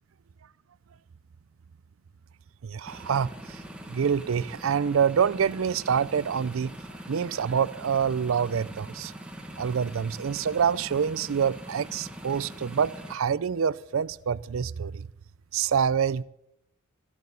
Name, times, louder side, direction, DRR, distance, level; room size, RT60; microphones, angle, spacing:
voice 1, 2.6-3.6 3.9-6.7 7.1-9.1 9.6-15.1 15.5-16.2, right 7 dB, 70° right, 0.4 m, -26 dB
sound 1, 2.8-13.2, right 1 dB, 5° right, 1.5 m, -43 dB
13.5 x 12.0 x 6.9 m
head